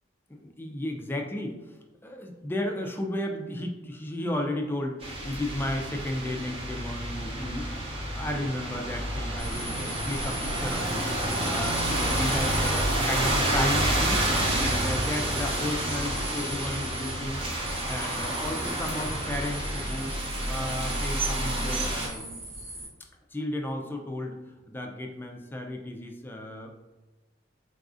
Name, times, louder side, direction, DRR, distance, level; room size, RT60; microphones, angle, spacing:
voice 1, 0.3-1.6 2.0-14.3 14.6-17.4 17.9-20.1 20.5-22.4 23.3-24.4 24.7-26.7, left 1 dB, 10° left, 3 dB, 0.3 m, -34 dB
sound 1, 5.0-22.1, right 1 dB, 30° right, 0.7 m, -29 dB
sound 2, 9.4-22.9, right 1 dB, 90° right, 1.0 m, -40 dB
4.0 x 2.4 x 2.5 m, 1.1 s
head